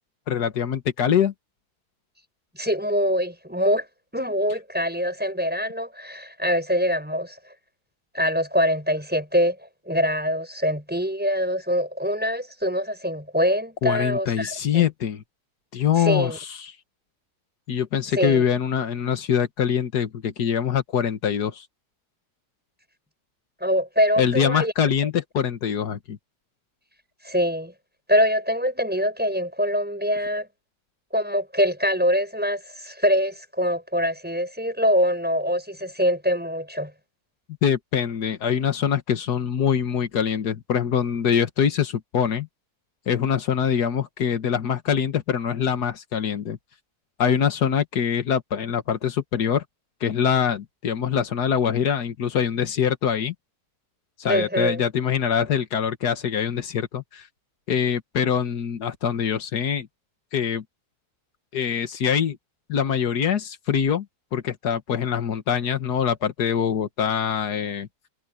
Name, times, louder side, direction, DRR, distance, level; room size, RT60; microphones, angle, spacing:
voice 1, 0.3-1.3 13.8-15.2 15.7-16.7 17.7-21.7 24.2-26.2 37.6-42.5 43.1-46.6 47.2-49.6 50.0-53.3 54.2-57.3 57.7-59.9 60.3-60.6 61.5-62.4 62.7-64.1 64.3-67.9, left 8 dB, 85° left, 1.9 m, -24 dB
voice 2, 2.5-3.9 4.1-7.4 8.1-9.6 9.9-14.9 16.0-16.4 18.2-18.4 23.6-24.7 27.2-27.7 28.1-30.5 31.1-36.9 54.3-54.8, equal, 5° right, 5.8 m, -24 dB
omnidirectional pair, 1.7 m